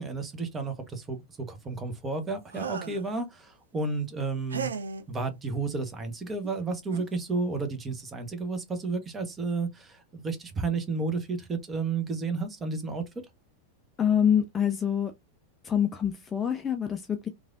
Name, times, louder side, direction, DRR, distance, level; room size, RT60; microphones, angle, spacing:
voice 1, 0.0-4.7 5.1-13.0, right 3 dB, 15° right, 0.8 m, -32 dB
sound 1, 2.5-3.1 4.5-5.0 6.4-6.5 6.9-7.2, right 5 dB, 70° right, 0.3 m, -35 dB
voice 2, 14.0-15.1 15.6-17.3, left 8 dB, 20° left, 0.3 m, -26 dB
3.2 x 2.4 x 2.3 m
figure-of-eight pair, 90°, 0 cm